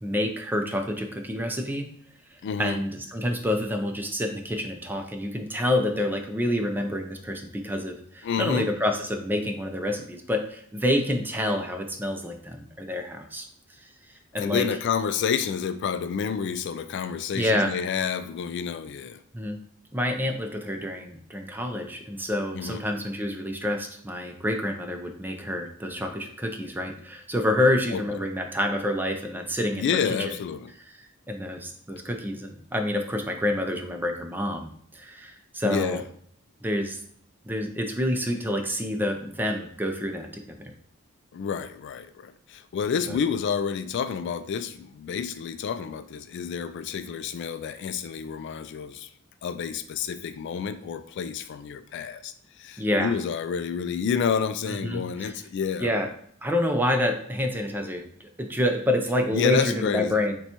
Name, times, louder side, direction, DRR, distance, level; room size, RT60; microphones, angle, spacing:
voice 1, 0.0-1.9 2.3-13.5 14.3-14.7 17.3-17.7 19.3-19.6 19.9-29.9 30.9-36.0 36.6-37.0 37.5-40.7 43.1-43.2 52.8-53.2 54.7-55.3 55.8-56.1 56.4-60.4, left 1 dB, 10° right, 4 dB, 0.5 m, -28 dB
voice 2, 2.4-2.8 8.2-8.7 14.3-19.2 22.5-22.8 27.9-28.2 29.7-30.7 35.6-36.0 41.3-49.1 49.4-55.9 59.3-60.2, left 7 dB, 60° left, 11 dB, 0.3 m, -29 dB
6.7 x 2.3 x 2.9 m, 0.65 s
head